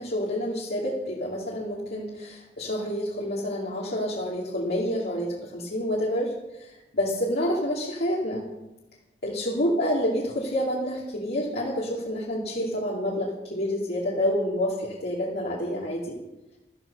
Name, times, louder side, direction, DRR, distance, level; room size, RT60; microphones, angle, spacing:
voice 1, 0.0-6.3 6.6-8.4 9.2-16.2, equal, 65° left, -5 dB, 2.7 m, -28 dB
14.0 x 13.5 x 5.5 m, 0.96 s
head